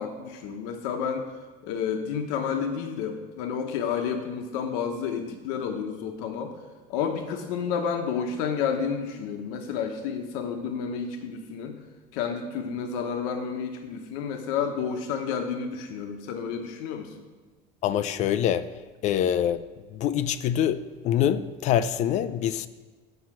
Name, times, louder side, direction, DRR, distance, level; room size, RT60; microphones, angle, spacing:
voice 1, 0.0-1.3 1.6-6.6 6.9-11.8 12.1-17.2, left 6 dB, 85° left, 5 dB, 1.0 m, -30 dB
voice 2, 17.8-18.7 19.0-19.6 19.9-22.7, left 10 dB, 45° left, 14 dB, 0.4 m, -25 dB
7.9 x 5.7 x 7.5 m, 1.3 s
cardioid pair, 155°, 17 cm